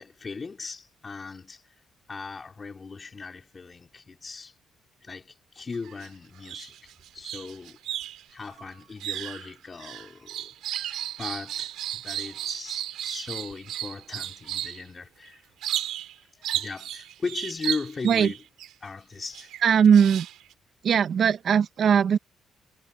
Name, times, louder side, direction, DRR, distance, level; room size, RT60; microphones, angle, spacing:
voice 1, 0.0-1.6 2.1-4.5 5.0-7.8 8.3-15.4 16.4-18.4 18.8-19.5, left 4 dB, 35° left, 4.7 m, -38 dB
sound 1, 5.7-6.1 6.4-14.8 15.6-16.1 16.4-18.7 19.3-20.5, right 12 dB, 85° right, 3.3 m, -34 dB
voice 2, 19.6-20.3 20.8-22.2, right 7 dB, 60° right, 1.3 m, -19 dB
cardioid pair, 90°, 0 cm